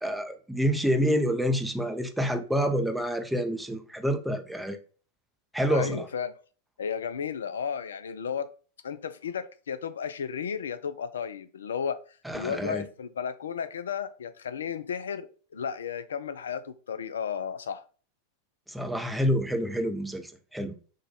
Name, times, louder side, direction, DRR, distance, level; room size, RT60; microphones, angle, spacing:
voice 1, 0.0-4.8 5.5-6.1 12.2-12.8 18.7-20.7, equal, 5° right, 0.4 m, -28 dB
voice 2, 5.7-6.3 6.8-8.5 8.8-12.0 12.3-15.3 15.5-17.8, left 7 dB, 65° left, 0.3 m, -33 dB
3.8 x 2.2 x 3.9 m
figure-of-eight pair, 90°, 0 cm